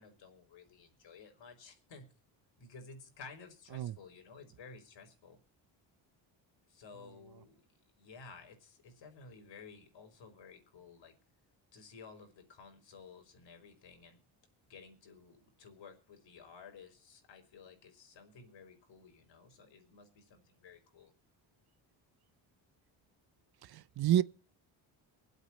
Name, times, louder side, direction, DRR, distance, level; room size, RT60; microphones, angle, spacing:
voice 1, 0.0-2.1 2.6-5.4 6.7-7.6 8.0-11.2 11.7-14.2 14.7-21.1, left 5 dB, 65° left, 4.7 m, -54 dB
voice 2, 23.6-24.2, right 11 dB, 50° right, 0.7 m, -29 dB
23.5 x 8.2 x 4.2 m
cardioid pair, 80°, 48 cm